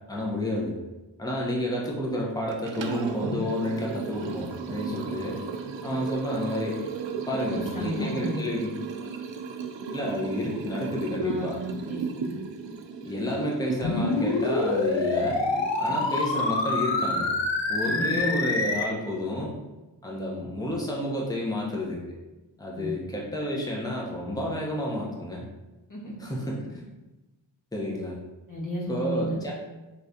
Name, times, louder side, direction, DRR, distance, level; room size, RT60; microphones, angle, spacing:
voice 1, 0.1-0.7 1.2-5.4 5.8-6.8 7.3-8.7 9.9-11.6 13.0-15.4 15.8-17.3 17.7-19.5 20.0-22.0 22.6-25.4 26.2-26.6 27.7-28.2 28.9-29.5, left 1 dB, 10° left, -3 dB, 0.9 m, -30 dB
Liquid, 2.5-16.6, right 5 dB, 70° right, 0.5 m, -36 dB
voice 2, 7.3-8.4 11.2-12.3 17.8-18.4 22.8-22.9 25.9-26.1 28.5-29.4, equal, 45° left, -6 dB, 1.5 m, -33 dB
sound 1, 13.8-18.8, left 3 dB, 75° left, 0.7 m, -26 dB
4.6 x 3.1 x 2.8 m, 1.1 s
wide cardioid pair, 45°, 45 cm